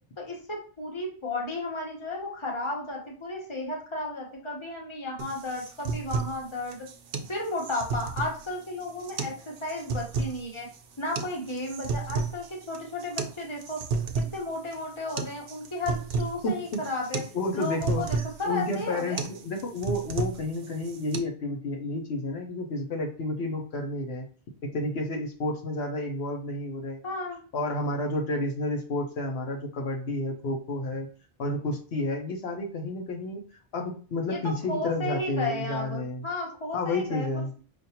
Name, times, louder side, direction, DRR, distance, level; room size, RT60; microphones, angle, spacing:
voice 1, 0.2-6.8 7.3-9.3 9.6-10.7 11.0-13.8 14.1-17.2 17.5-19.2 27.0-27.4 34.3-34.4 34.7-37.3, left 2 dB, 30° left, -1 dB, 1.1 m, -33 dB
sound 1, 5.2-21.2, right 4 dB, 65° right, 0.7 m, -33 dB
voice 2, 16.4-16.8 17.3-24.3 24.6-27.0 27.5-31.1 31.4-33.4 33.7-36.3 36.7-37.5, left 2 dB, 80° left, 1 dB, 1.0 m, -31 dB
5.0 x 2.5 x 2.8 m, 0.39 s
omnidirectional pair, 1.0 m